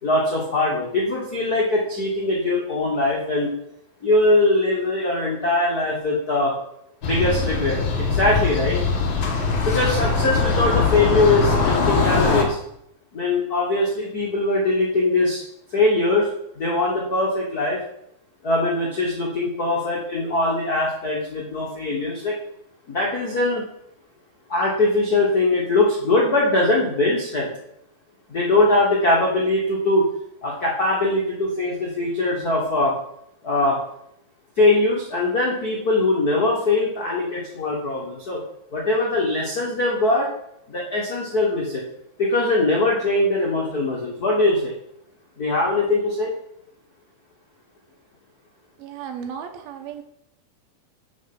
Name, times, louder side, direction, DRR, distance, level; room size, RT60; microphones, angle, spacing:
voice 1, 0.0-3.5 4.0-6.6 7.0-8.8 9.6-12.6 13.1-15.4 15.7-16.3 16.6-17.8 18.4-22.3 22.9-23.6 24.5-27.5 28.3-30.1 30.4-32.9 33.4-33.8 34.6-38.4 38.7-40.3 40.7-41.8 42.2-44.7 45.4-46.3, left 2 dB, 80° left, -3 dB, 0.8 m, -21 dB
sound 1, 7.0-12.4, left 4 dB, 55° left, 1.3 m, -21 dB
voice 2, 48.8-50.0, right 8 dB, 90° right, 5 dB, 2.8 m, -34 dB
7.3 x 6.4 x 6.0 m, 0.76 s
omnidirectional pair, 4.2 m